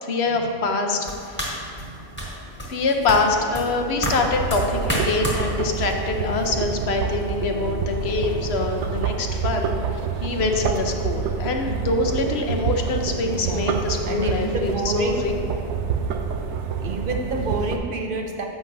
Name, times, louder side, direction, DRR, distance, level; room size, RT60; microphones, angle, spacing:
voice 1, 0.0-1.0 1.3-1.5 2.7-15.3, left 3 dB, 65° left, 3 dB, 0.9 m, -24 dB
sound 1, 1.0-6.8, equal, 10° left, 1.5 m, -31 dB
voice 2, 1.6-2.1 13.3-13.8 14.1-15.3 16.8-18.4, right 2 dB, 55° right, 2 dB, 0.8 m, -29 dB
sound 2, 2.9-8.5, left 2 dB, 45° left, 1.4 m, -39 dB
sound 3, 4.1-17.8, right 6 dB, 80° right, 0.9 m, -27 dB
10.0 x 7.8 x 2.6 m, 2.4 s
omnidirectional pair, 1.2 m